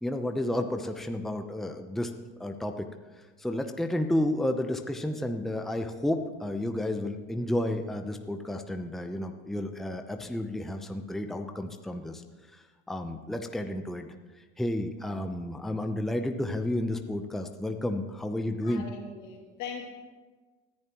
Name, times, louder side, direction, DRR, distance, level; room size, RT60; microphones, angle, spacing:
voice 1, 0.0-2.1 2.4-2.9 3.4-12.2 12.5-14.1 14.6-18.8, left 1 dB, ahead, 5 dB, 0.8 m, -31 dB
voice 2, 18.6-19.9, left 5 dB, 70° left, 1 dB, 2.7 m, -40 dB
19.5 x 10.5 x 3.1 m, 1.3 s
supercardioid pair, 95°, 31 cm